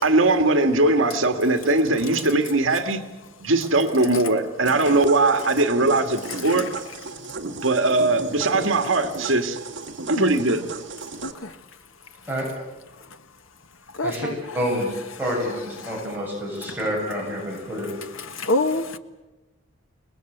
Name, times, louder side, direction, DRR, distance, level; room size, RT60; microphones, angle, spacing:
voice 1, 0.0-3.0 3.4-6.7 7.6-9.6 10.1-10.6, right 2 dB, 75° right, 2.1 m, -20 dB
sound 1, 4.7-11.3, right 3 dB, 60° right, 2.3 m, -35 dB
voice 2, 6.3-6.6 8.5-8.7 10.1-10.4 11.2-11.6 13.9-14.3 15.8-15.9 18.2-19.0, left 2 dB, 85° left, 1.4 m, -27 dB
voice 3, 14.5-14.9 15.2-18.0, equal, 10° right, 7.9 m, -28 dB
28.5 x 20.0 x 8.1 m
head